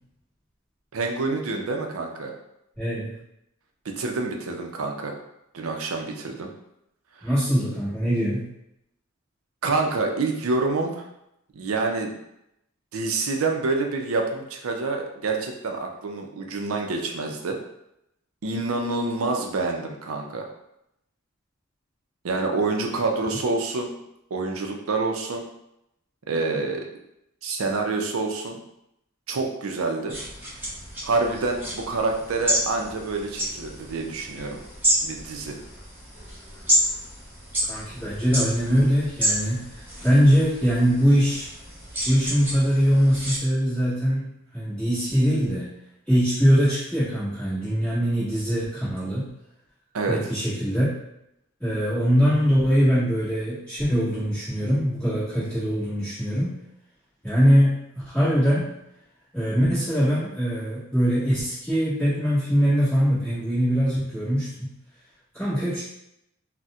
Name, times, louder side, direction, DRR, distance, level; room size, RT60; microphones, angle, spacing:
voice 1, 0.9-2.3 3.8-5.2 5.5-6.5 7.2-7.3 9.6-11.0 11.5-12.1 12.9-17.6 18.4-20.5 22.2-23.9 24.3-25.4 26.3-26.9 27.4-28.6 29.3-30.2 31.0-34.6 35.0-35.6 49.9-50.2, right 3 dB, 80° right, 3 dB, 0.5 m, -27 dB
voice 2, 2.8-3.2 7.2-8.5 37.7-41.5 42.0-45.7 46.1-49.3 50.1-50.9 51.6-56.6 57.2-57.8 58.0-58.7 59.3-64.7 65.3-65.8, equal, 10° left, -16 dB, 1.3 m, -22 dB
sound 1, 30.1-43.4, equal, 10° right, 0.8 m, -30 dB
4.1 x 2.1 x 2.4 m, 0.82 s
head